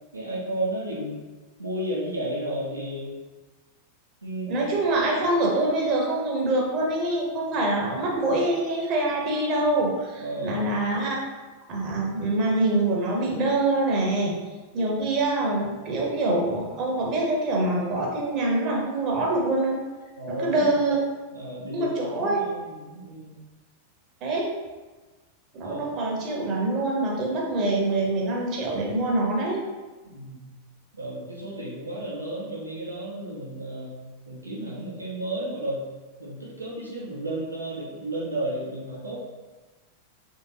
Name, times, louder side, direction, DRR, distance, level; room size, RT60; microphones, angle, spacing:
voice 1, 0.1-1.2 1.6-3.1 4.2-4.6 10.2-10.7 20.2-20.8 21.3-23.3 25.6-25.8 30.1-30.4 30.9-33.9 34.3-35.8 36.2-39.2, right 1 dB, 80° right, -6 dB, 0.7 m, -33 dB
voice 2, 4.5-11.2 11.7-14.4 14.7-19.8 20.3-21.0 21.7-22.4 24.2-24.5 25.5-29.6, right 2 dB, 35° right, -2 dB, 0.8 m, -25 dB
3.3 x 2.8 x 2.9 m, 1.2 s
figure-of-eight pair, 90°, 0 cm